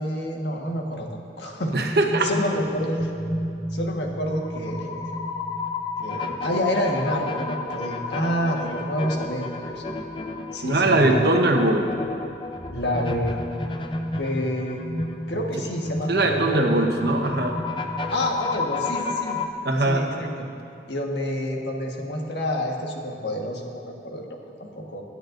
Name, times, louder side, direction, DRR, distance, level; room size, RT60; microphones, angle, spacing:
voice 1, 0.0-1.7 2.2-3.1 3.7-5.0 6.0-9.8 10.5-11.2 12.7-13.4 14.1-14.8 15.3-16.6 18.1-19.4 19.9-20.5 20.9-25.0, equal, 75° left, 0 dB, 1.5 m, -28 dB
voice 2, 1.7-2.3 10.6-11.9 16.1-17.6 19.6-20.1, right 2 dB, 65° right, 2 dB, 1.2 m, -21 dB
sound 1, 1.8-19.5, left 2 dB, 30° left, 0.6 m, -31 dB
26.5 x 9.9 x 2.6 m, 2.7 s
head